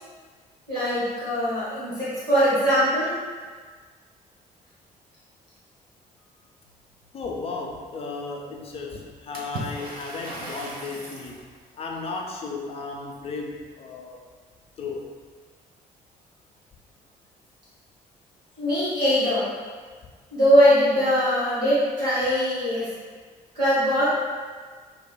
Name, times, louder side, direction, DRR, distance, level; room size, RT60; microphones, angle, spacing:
voice 1, 0.7-3.1 18.6-19.5 20.3-22.9 23.5-24.1, equal, 85° right, -11 dB, 0.8 m, -21 dB
voice 2, 7.1-14.3 14.8-15.1, left 3 dB, 30° left, 0 dB, 0.4 m, -35 dB
Water / Splash splatter, 9.3-11.4, right 1 dB, 45° right, 0.6 m, -36 dB
2.8 x 2.1 x 2.2 m, 1.5 s
figure-of-eight pair, 45°, 20 cm